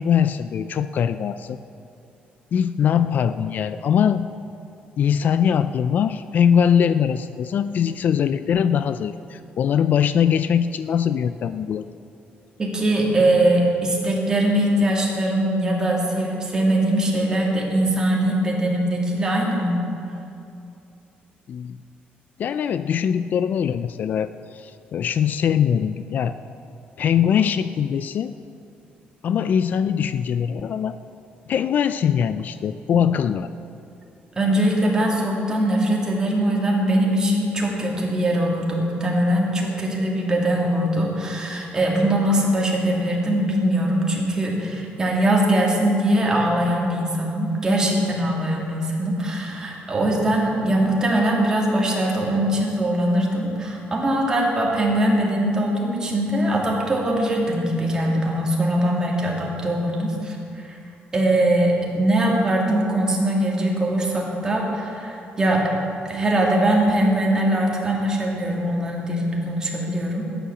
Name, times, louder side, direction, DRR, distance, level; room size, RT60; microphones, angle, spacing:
voice 1, 0.0-1.6 2.5-4.3 5.0-11.9 21.5-21.8 22.4-26.4 27.0-28.3 29.2-31.0 31.5-33.5, left 8 dB, 50° left, 12 dB, 0.4 m, -22 dB
voice 2, 12.6-19.8 34.3-60.8 61.1-65.7 66.1-70.3, right 1 dB, 20° right, -2 dB, 2.6 m, -21 dB
13.0 x 10.0 x 7.1 m, 2.6 s
cardioid pair, 135°, 4 cm